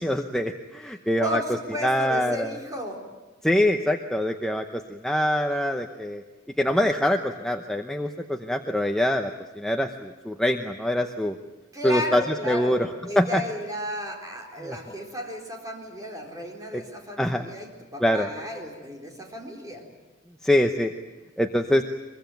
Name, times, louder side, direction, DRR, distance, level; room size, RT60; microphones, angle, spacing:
voice 1, 0.0-1.4 1.8-2.6 3.4-6.2 6.6-11.4 11.8-12.9 13.2-13.4 14.6-14.8 16.7-16.8 17.2-17.5 18.0-18.3 20.4-20.9 21.4-21.8, left 1 dB, 5° left, 4 dB, 0.9 m, -24 dB
voice 2, 1.2-3.0 11.7-19.8, left 1 dB, 15° right, 1 dB, 4.2 m, -34 dB
23.5 x 23.0 x 9.3 m, 1.2 s
head